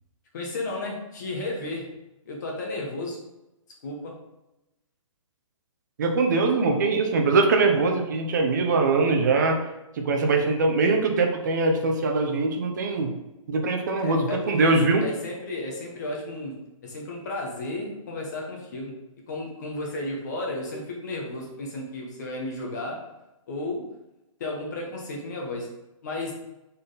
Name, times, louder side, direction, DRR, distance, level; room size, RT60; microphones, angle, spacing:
voice 1, 0.3-1.9 2.3-3.2 3.8-4.1 14.0-14.7 15.0-16.5 16.8-18.9 19.3-23.0 23.5-23.8 24.4-25.7 26.0-26.3, left 2 dB, 30° left, -1 dB, 1.2 m, -33 dB
voice 2, 6.0-9.6 10.0-13.1 13.5-15.0, right 3 dB, 35° right, 3 dB, 0.8 m, -22 dB
5.9 x 4.1 x 4.0 m, 0.95 s
hypercardioid pair, 175°, 18 cm